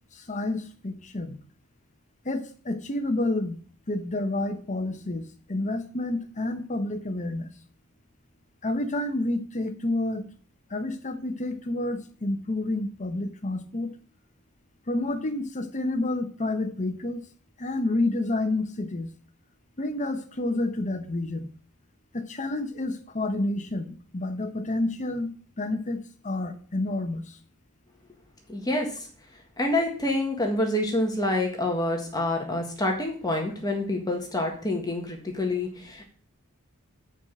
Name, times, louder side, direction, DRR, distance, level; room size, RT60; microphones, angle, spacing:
voice 1, 0.1-1.4 2.2-3.6 3.9-7.5 8.6-10.2 10.7-13.9 14.9-17.2 17.6-19.1 19.8-21.5 22.1-27.4, left 2 dB, 35° left, 8 dB, 1.0 m, -29 dB
voice 2, 28.5-28.9 29.6-36.0, left 1 dB, 20° left, 1 dB, 1.7 m, -27 dB
8.2 x 4.9 x 7.5 m, 0.43 s
head